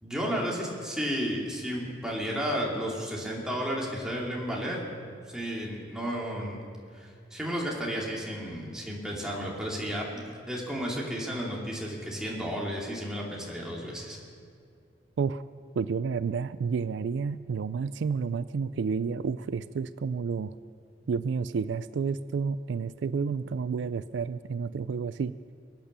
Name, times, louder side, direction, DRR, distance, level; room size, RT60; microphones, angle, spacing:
voice 1, 0.0-4.8 5.3-6.6 6.9-14.2, equal, 5° right, -4 dB, 2.9 m, -33 dB
voice 2, 15.7-20.5 21.1-25.3, right 5 dB, 70° right, 15 dB, 0.4 m, -30 dB
23.5 x 8.9 x 6.8 m, 2.2 s
head